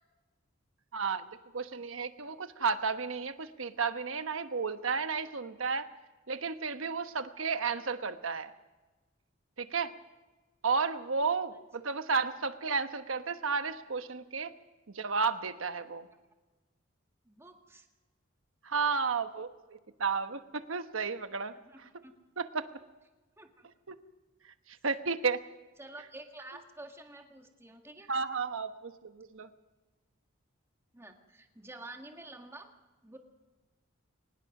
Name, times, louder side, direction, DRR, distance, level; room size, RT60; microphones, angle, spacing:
voice 1, 0.9-1.3 1.5-5.9 6.3-8.5 9.6-9.9 10.6-14.5 14.9-16.1 18.6-21.5 22.4-22.7 23.9-24.0 24.7-25.4 28.1-29.5, right 5 dB, 85° right, 9 dB, 1.2 m, -32 dB
voice 2, 17.3-17.9 21.5-22.1 23.4-23.7 25.8-28.1 30.9-32.7 33.0-33.2, right 2 dB, 15° right, 3 dB, 1.9 m, -49 dB
23.0 x 19.5 x 6.0 m, 1.2 s
head